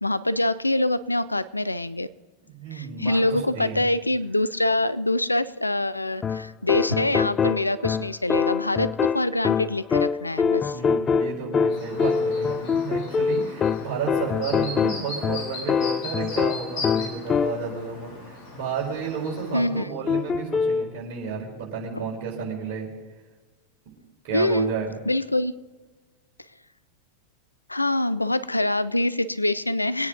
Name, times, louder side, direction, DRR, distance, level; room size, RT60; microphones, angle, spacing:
voice 1, 0.0-2.1 2.7-10.8 19.5-19.9 24.3-24.7 25.1-25.5 27.7-30.1, left 1 dB, 85° left, 15 dB, 0.5 m, -25 dB
voice 2, 2.4-3.9 10.7-22.9 24.2-24.9, right 6 dB, 50° right, -2 dB, 4.6 m, -32 dB
sound 1, 6.2-17.8 20.1-20.9, left 6 dB, 20° left, 0.3 m, -24 dB
Chirp tweet, 11.7-19.7, left 2 dB, 40° left, 3.8 m, -39 dB
23.0 x 9.5 x 3.9 m, 1.3 s
figure-of-eight pair, 90°, 0 cm